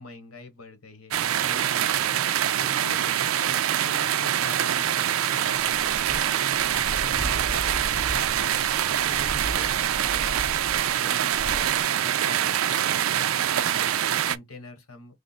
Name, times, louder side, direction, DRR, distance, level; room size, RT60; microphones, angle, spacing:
voice 1, 0.0-2.2 2.6-10.5 11.0-15.1, left 3 dB, 85° left, 1.2 m, -45 dB
sound 1, 1.1-14.4, right 10 dB, 75° right, 0.4 m, -24 dB
Dog / Bird, 5.6-11.8, equal, 35° left, 0.9 m, -37 dB
3.5 x 2.4 x 4.0 m
head